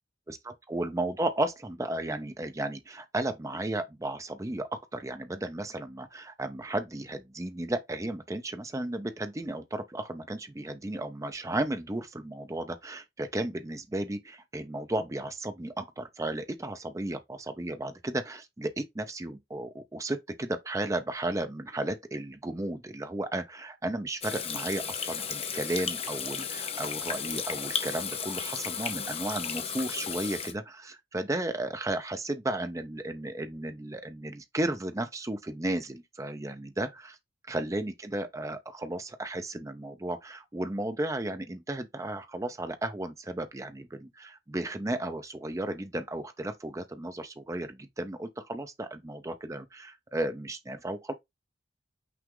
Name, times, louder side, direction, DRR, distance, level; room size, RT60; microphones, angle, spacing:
voice 1, 0.3-37.2 37.5-51.1, right 1 dB, 15° right, 0.5 m, -34 dB
Water tap faucet / Sink (filling or washing), 24.2-30.5, left 7 dB, 30° left, 0.6 m, -34 dB
5.9 x 2.4 x 3.6 m
head